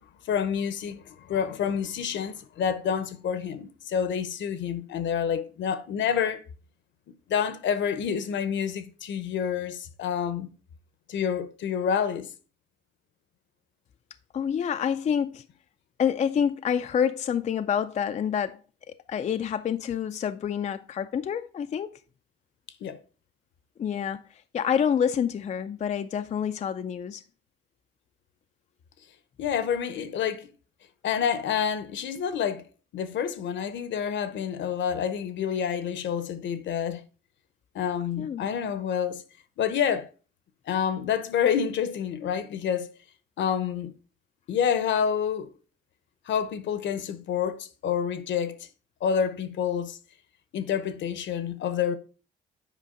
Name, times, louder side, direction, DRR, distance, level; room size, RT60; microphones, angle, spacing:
voice 1, 0.3-6.4 7.3-10.5 11.1-12.3 22.8-23.0 29.4-30.5 31.0-32.6 32.9-37.0 37.7-39.2 39.6-40.1 40.7-42.9 43.4-43.9 44.5-45.5 46.3-48.7 49.0-50.0 50.5-51.9, left 8 dB, 70° left, 0.8 m, -28 dB
voice 2, 14.3-15.5 16.0-18.6 19.1-21.9 23.8-27.2 38.2-38.5, left 8 dB, 35° left, 0.4 m, -27 dB
8.3 x 5.0 x 3.7 m
cardioid pair, 90°, 20 cm